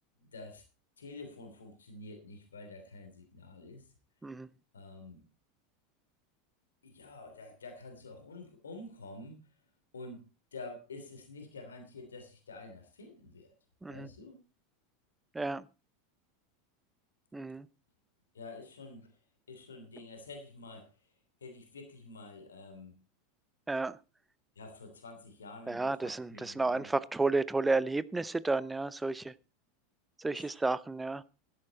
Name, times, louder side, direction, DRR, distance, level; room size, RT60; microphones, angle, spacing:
voice 1, 0.2-0.6 1.0-3.9 4.7-5.2 6.8-9.5 9.9-13.5 13.9-14.4 18.3-19.1 19.5-20.9 21.4-22.9 24.5-26.9 30.3-30.5, left 3 dB, 70° left, 6 dB, 3.0 m, -48 dB
voice 2, 15.3-15.7 17.3-17.7 23.7-24.0 25.7-29.3 30.2-31.2, right 3 dB, 10° right, 19 dB, 0.6 m, -32 dB
13.5 x 10.5 x 4.2 m, 0.30 s
figure-of-eight pair, 80°, 0 cm